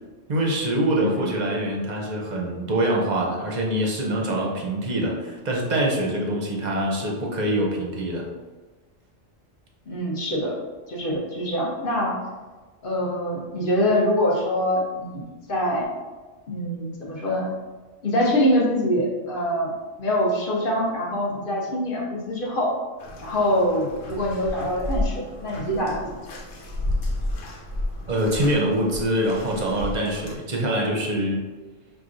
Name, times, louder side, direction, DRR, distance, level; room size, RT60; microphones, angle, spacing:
voice 1, 0.3-8.3 28.1-31.4, right 1 dB, 45° right, -1 dB, 0.7 m, -24 dB
voice 2, 9.9-10.6 10.9-12.2 12.8-15.9 16.5-17.5 18.0-19.7 20.0-22.8 23.2-26.4, equal, 50° left, -3 dB, 0.9 m, -24 dB
Bathtub (filling or washing), 23.0-30.4, left 1 dB, 90° left, 1.1 m, -32 dB
5.9 x 2.4 x 2.5 m, 1.3 s
omnidirectional pair, 1.3 m